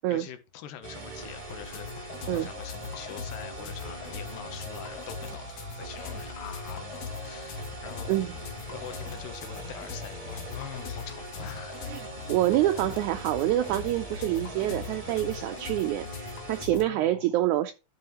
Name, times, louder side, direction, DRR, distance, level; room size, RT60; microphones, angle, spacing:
voice 1, 0.1-5.5 5.8-8.4 8.7-12.0 16.7-17.4, left 10 dB, 80° left, 2.5 m, -44 dB
sound 1, 0.8-16.7, right 2 dB, 25° right, 0.7 m, -41 dB
sound 2, 1.5-16.9, left 6 dB, 65° left, 1.6 m, -41 dB
voice 2, 11.9-17.7, right 14 dB, 85° right, 1.7 m, -27 dB
12.5 x 5.5 x 2.9 m
omnidirectional pair, 3.9 m